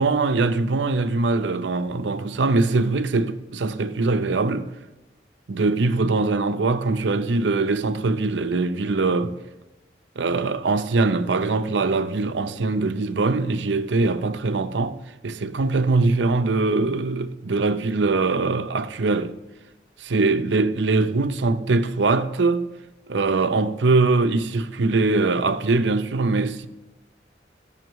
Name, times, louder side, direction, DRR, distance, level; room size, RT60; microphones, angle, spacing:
voice 1, 0.0-4.7 5.5-9.4 10.2-15.0 15.2-19.3 20.0-22.7 23.1-26.7, right 3 dB, 80° right, 0.6 m, -22 dB
13.0 x 5.7 x 4.6 m
head